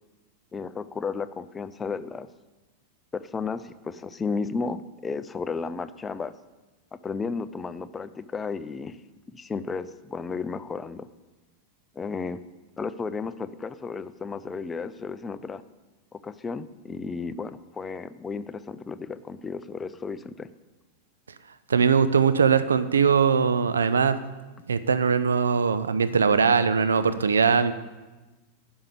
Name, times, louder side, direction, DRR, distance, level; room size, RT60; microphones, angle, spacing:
voice 1, 0.5-2.3 3.1-6.3 6.9-9.0 9.3-11.1 11.9-12.4 12.8-15.6 16.1-20.5, left 4 dB, 15° left, 14 dB, 0.4 m, -33 dB
voice 2, 21.7-24.2 24.7-27.7, right 6 dB, 70° right, 12 dB, 0.5 m, -21 dB
10.5 x 5.5 x 6.8 m, 1.2 s
figure-of-eight pair, 90°, 0 cm